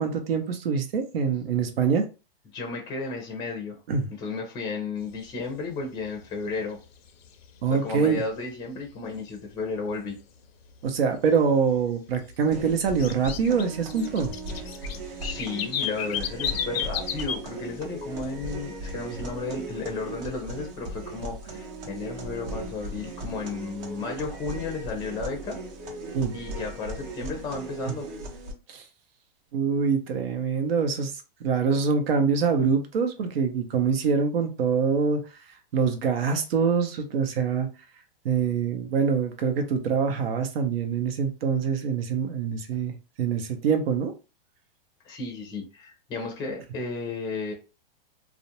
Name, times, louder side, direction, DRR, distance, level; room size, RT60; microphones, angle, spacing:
voice 1, 0.0-2.1 3.9-4.1 7.6-8.2 10.8-14.3 26.1-26.3 28.7-28.8 29.5-31.1 31.4-35.2 35.7-37.7 38.2-44.1, right 6 dB, 80° right, 5 dB, 0.8 m, -25 dB
voice 2, 2.5-3.8 4.2-6.8 7.7-10.2 15.2-25.6 26.3-28.1 45.0-47.5, left 4 dB, 15° left, 2 dB, 0.5 m, -33 dB
sound 1, 5.0-5.1 5.5-5.7 6.0-6.5 6.9-8.1 8.5-8.6 9.1-9.2 9.8-9.9 10.2-10.3 10.7-11.5 11.8-17.4 17.7-18.1, left 8 dB, 85° left, 0.6 m, -33 dB
sound 2, 12.5-28.5, right 2 dB, 45° right, 0.8 m, -37 dB
2.5 x 2.1 x 2.8 m, 0.31 s
hypercardioid pair, 145°, 30 cm